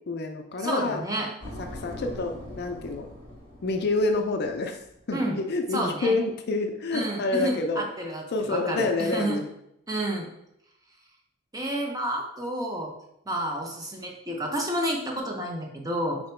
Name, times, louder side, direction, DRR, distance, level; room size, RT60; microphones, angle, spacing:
voice 1, 0.1-1.0 1.6-3.1 3.6-4.8 5.1-7.8 8.3-9.5, left 3 dB, 50° left, 5 dB, 0.4 m, -28 dB
voice 2, 0.6-1.3 5.1-5.4 5.7-6.2 6.9-9.4 9.9-10.3 11.5-12.9 13.3-16.2, right 1 dB, 15° right, 0 dB, 0.7 m, -30 dB
sound 1, 1.4-5.1, left 1 dB, 75° right, 1.7 m, -42 dB
4.3 x 2.9 x 4.3 m, 0.79 s
head